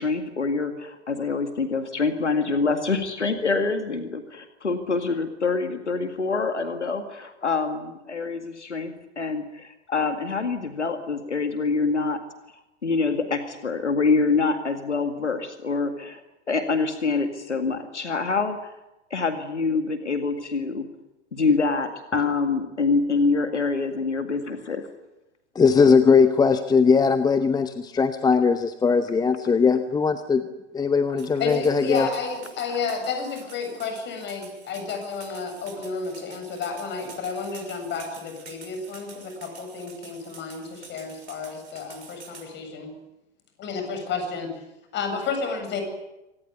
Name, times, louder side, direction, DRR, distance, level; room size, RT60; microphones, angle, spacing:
voice 1, 0.0-12.2 12.8-16.2 16.5-18.6 19.1-20.9 21.3-24.9, left 4 dB, 80° left, 8 dB, 2.1 m, -25 dB
voice 2, 25.5-30.4 30.7-32.1, left 5 dB, 10° left, 11 dB, 0.9 m, -19 dB
sound 1, 31.2-42.5, right 5 dB, 75° right, 6.5 m, -48 dB
voice 3, 31.4-42.9 43.6-44.5 44.9-45.8, left 5 dB, 30° left, 6 dB, 7.9 m, -31 dB
25.5 x 18.5 x 9.5 m, 0.97 s
figure-of-eight pair, 95°, 35 cm